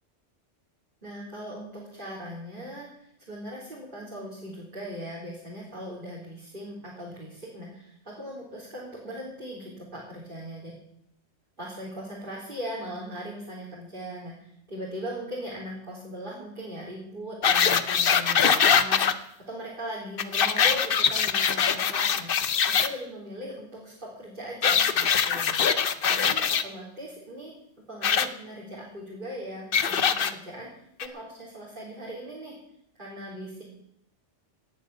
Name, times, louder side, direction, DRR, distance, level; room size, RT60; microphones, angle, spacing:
voice 1, 1.0-10.7 11.6-27.5 27.9-30.7 31.0-32.6 33.0-33.6, equal, 45° right, -5 dB, 4.0 m, -39 dB
sound 1, 17.4-19.1 20.2-22.9 24.6-26.6 28.0-28.3 29.7-30.3 31.0-31.1, left 7 dB, 50° left, 0.9 m, -22 dB
18.0 x 7.5 x 8.2 m, 0.75 s
omnidirectional pair, 1.2 m